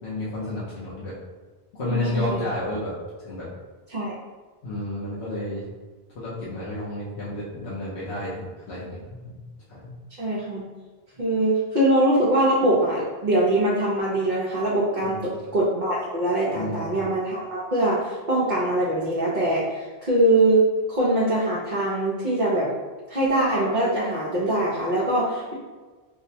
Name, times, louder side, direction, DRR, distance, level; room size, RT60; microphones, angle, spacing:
voice 1, 0.0-1.1 1.7-2.9 3.2-3.5 4.6-5.7 6.1-9.2 9.7-10.0 15.0-15.2 16.5-16.9, left 1 dB, 85° left, -8 dB, 1.1 m, -31 dB
voice 2, 1.9-2.5 3.9-4.1 10.2-10.6 11.2-22.7 23.1-25.5, right 1 dB, 50° right, -6 dB, 0.8 m, -23 dB
4.7 x 2.1 x 2.8 m, 1.4 s
omnidirectional pair, 1.1 m